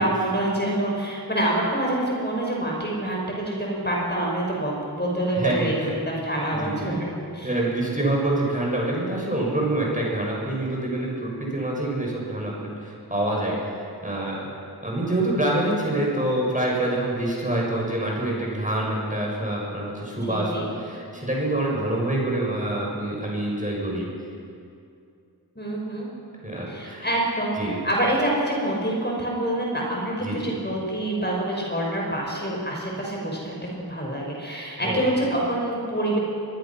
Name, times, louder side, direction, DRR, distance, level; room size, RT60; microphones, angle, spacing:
voice 1, 0.0-7.1 7.3-7.5 20.2-20.7 25.6-26.1 26.7-36.2, right 1 dB, 25° left, -2 dB, 5.8 m, -26 dB
voice 2, 5.3-6.0 6.6-7.0 7.4-14.4 14.8-24.1 26.4-27.1 27.6-27.8 30.2-30.4 34.8-35.0, right 1 dB, 20° right, -3 dB, 7.0 m, -26 dB
25.0 x 21.0 x 6.1 m, 2.5 s
wide cardioid pair, 45°, 38 cm